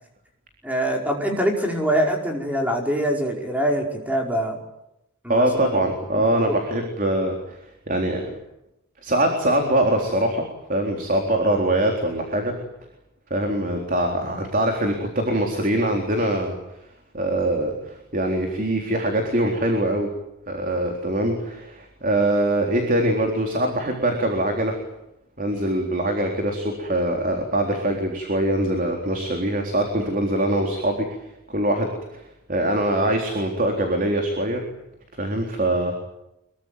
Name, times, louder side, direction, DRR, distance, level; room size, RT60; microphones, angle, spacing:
voice 1, 0.6-4.6 5.2-5.8 6.1-6.2, right 1 dB, 5° right, 2 dB, 5.1 m, -24 dB
voice 2, 5.3-7.6 7.9-8.3 9.0-10.4 10.7-12.5 13.3-16.6 17.1-20.1 20.5-24.8 25.4-31.1 31.5-32.2 32.5-34.6 35.2-35.9, right 1 dB, 40° right, 3 dB, 3.9 m, -23 dB
25.0 x 23.0 x 9.3 m, 0.87 s
head